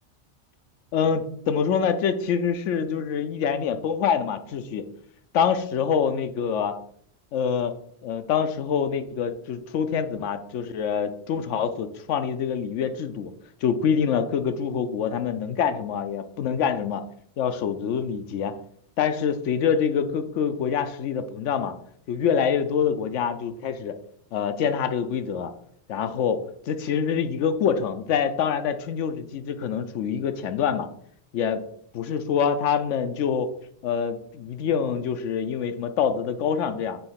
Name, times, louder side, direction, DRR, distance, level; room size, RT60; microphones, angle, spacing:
voice 1, 0.9-4.9 5.3-6.7 7.3-7.8 8.0-13.3 13.6-17.0 17.4-18.6 19.0-21.7 22.1-24.0 24.3-25.5 25.9-30.9 31.3-31.6 31.9-33.5 33.8-37.0, left 7 dB, 85° left, 10 dB, 1.0 m, -25 dB
7.0 x 3.2 x 5.6 m, 0.68 s
omnidirectional pair, 1.2 m